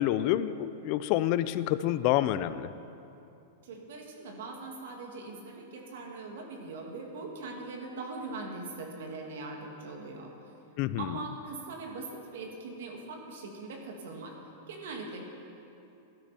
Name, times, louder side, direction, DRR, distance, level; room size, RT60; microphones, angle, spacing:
voice 1, 0.0-2.7 10.8-11.1, left 13 dB, 35° left, 14 dB, 0.4 m, -28 dB
voice 2, 3.6-10.5 11.0-15.2, right 3 dB, 70° right, 1 dB, 2.3 m, -41 dB
18.0 x 12.0 x 4.4 m, 2.8 s
supercardioid pair, 170°, 0 cm